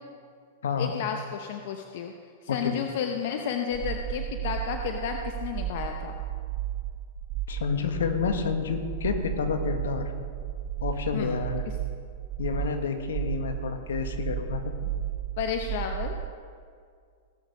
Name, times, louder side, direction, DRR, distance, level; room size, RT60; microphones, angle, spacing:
voice 1, 0.8-2.1 2.4-6.1 11.1-11.4 14.8-14.9 15.4-16.2, left 7 dB, 60° left, 4 dB, 0.9 m, -32 dB
sound 1, 3.7-16.3, right 11 dB, 45° right, 0.8 m, -34 dB
voice 2, 7.5-10.1 10.8-11.6 12.4-14.7, left 6 dB, 80° left, 6 dB, 1.4 m, -29 dB
18.5 x 6.5 x 5.4 m, 2.2 s
hypercardioid pair, 120°, 0 cm